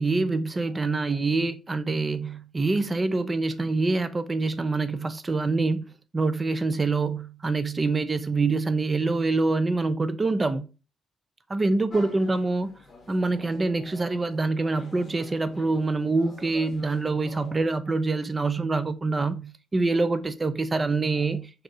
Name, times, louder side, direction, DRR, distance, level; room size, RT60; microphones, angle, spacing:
voice 1, 0.0-5.9 6.1-10.7 11.5-12.7 13.1-21.6, right 3 dB, 20° right, 0.3 m, -25 dB
sound 1, 11.9-17.6, left 2 dB, 20° left, 0.9 m, -47 dB
3.6 x 2.7 x 3.9 m
cardioid pair, 165°, 0 cm